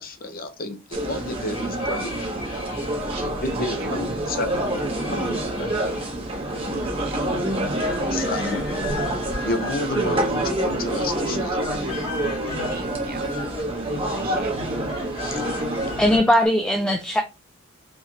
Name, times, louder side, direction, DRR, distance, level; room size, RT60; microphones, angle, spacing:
voice 1, 0.0-2.2 3.4-4.5 5.1-5.8 8.1-8.6 9.4-11.6 15.3-15.4, left 2 dB, 45° left, 0.8 m, -31 dB
sound 1, 0.9-16.2, right 1 dB, 25° right, 1.0 m, -27 dB
sound 2, 1.5-3.0 4.7-6.1 7.8-10.5 11.4-13.7 14.8-16.5, left 4 dB, 65° left, 2.3 m, -38 dB
voice 2, 3.4-4.0 6.7-7.3 12.7-13.3 13.8-14.5, right 4 dB, 45° right, 0.6 m, -40 dB
voice 3, 16.0-17.2, equal, 5° left, 0.4 m, -19 dB
4.6 x 3.3 x 2.8 m
head